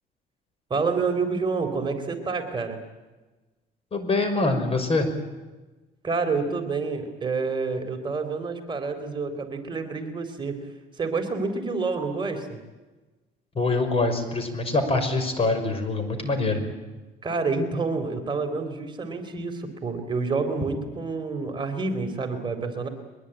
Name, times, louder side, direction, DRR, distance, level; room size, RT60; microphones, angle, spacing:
voice 1, 0.7-2.8 6.0-10.6 11.0-12.6 17.2-22.9, right 4 dB, 30° right, 5 dB, 3.9 m, -28 dB
voice 2, 3.9-5.1 13.5-16.6, left 3 dB, 35° left, 8 dB, 5.8 m, -24 dB
22.5 x 22.0 x 9.1 m, 1.2 s
cardioid pair, 110°, 17 cm